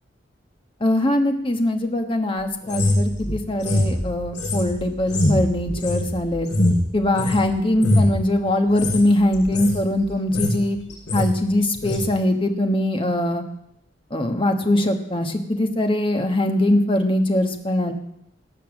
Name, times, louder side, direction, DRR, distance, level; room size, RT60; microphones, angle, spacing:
voice 1, 0.8-6.5 6.9-10.8 11.1-13.4 14.1-17.9, left 1 dB, 30° left, 5 dB, 1.4 m, -22 dB
sound 1, 2.7-7.4 7.7-8.2 8.7-9.0 9.3-9.8 10.1-10.6 10.9-11.3 11.8-12.0, left 1 dB, 70° left, 7.1 m, -22 dB
18.0 x 7.2 x 7.3 m, 0.77 s
head